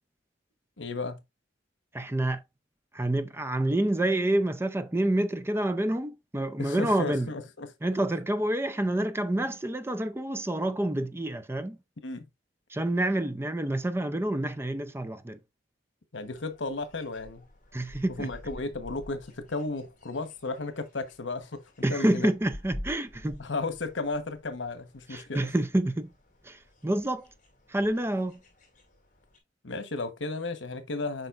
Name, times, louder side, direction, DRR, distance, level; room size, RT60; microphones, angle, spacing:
voice 1, 0.8-1.2 6.6-7.7 12.0-12.3 16.1-17.5 18.1-21.6 21.9-22.3 23.4-25.5 29.6-31.3, left 3 dB, 85° left, 1.1 m, -34 dB
voice 2, 1.9-2.4 2.9-7.3 7.8-11.8 12.7-15.4 17.7-18.3 21.8-23.4 25.1-26.1 26.4-27.3 27.7-28.4, right 1 dB, 15° right, 0.5 m, -28 dB
sound 1, 16.1-29.4, left 1 dB, 45° left, 2.3 m, -49 dB
7.5 x 5.1 x 2.5 m
head